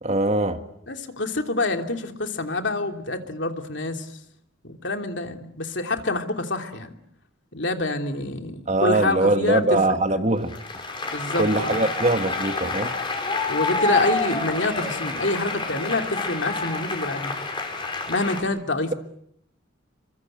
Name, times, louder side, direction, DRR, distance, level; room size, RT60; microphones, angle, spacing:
voice 1, 0.0-0.6 8.7-10.5 11.4-12.9, right 2 dB, 35° right, 1.7 m, -22 dB
voice 2, 0.9-4.1 4.6-6.9 7.5-10.0 11.1-11.8 13.5-17.3 18.1-18.9, left 2 dB, 65° left, 3.1 m, -27 dB
Applause, 10.5-18.4, left 3 dB, 25° left, 5.8 m, -28 dB
29.0 x 24.0 x 7.9 m
head